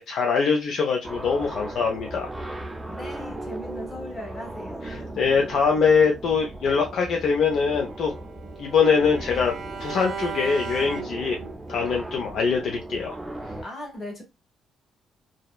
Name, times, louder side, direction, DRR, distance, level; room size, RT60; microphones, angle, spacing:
voice 1, 0.0-2.3 4.8-8.1 8.6-11.4 11.7-13.2, left 5 dB, 70° left, 0.5 m, -23 dB
sound 1, 1.0-13.6, right 1 dB, 15° right, 0.5 m, -37 dB
voice 2, 2.9-5.1 13.6-14.2, left 1 dB, 30° left, 1.3 m, -38 dB
Bowed string instrument, 7.6-11.7, right 6 dB, 65° right, 0.5 m, -37 dB
2.7 x 2.1 x 2.2 m
cardioid pair, 90°, 0 cm